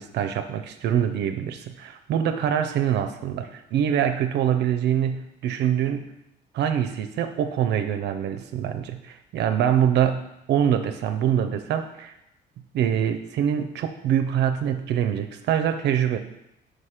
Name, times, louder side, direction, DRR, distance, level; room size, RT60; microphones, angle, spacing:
voice 1, 0.0-6.1 6.5-12.1 12.7-16.2, right 9 dB, 65° right, 8 dB, 0.5 m, -24 dB
5.8 x 5.0 x 4.9 m, 0.81 s
cardioid pair, 150°, 19 cm